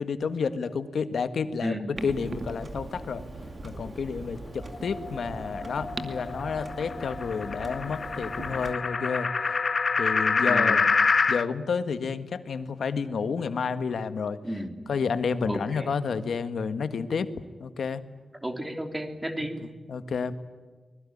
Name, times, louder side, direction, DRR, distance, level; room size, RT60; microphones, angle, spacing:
voice 1, 0.0-1.8 2.0-3.2 3.6-9.6 10.0-10.8 11.3-14.4 14.9-17.3 17.6-18.0 19.4-19.5 19.9-20.3, left 5 dB, 80° left, 11 dB, 1.6 m, -30 dB
voice 2, 1.6-2.0 10.5-10.8 14.4-14.7 15.5-16.0 18.4-19.6, right 1 dB, 10° right, 6 dB, 3.2 m, -33 dB
Clock, 2.0-8.7, right 2 dB, 35° right, 2.3 m, -40 dB
sound 1, 4.7-11.5, left 4 dB, 45° left, 1.0 m, -27 dB
24.5 x 21.5 x 10.0 m, 1.4 s
wide cardioid pair, 135°, 0 cm